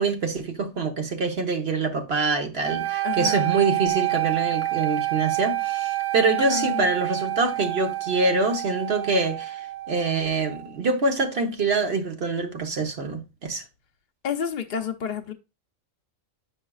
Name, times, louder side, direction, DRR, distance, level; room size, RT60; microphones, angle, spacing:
voice 1, 0.0-13.6, right 3 dB, 50° right, 1.3 m, -25 dB
sound 1, 2.6-10.7, right 18 dB, 85° right, 1.0 m, -28 dB
voice 2, 3.0-3.5 6.4-6.9 14.2-15.3, left 7 dB, 50° left, 0.6 m, -30 dB
8.1 x 5.5 x 2.3 m
omnidirectional pair, 1.4 m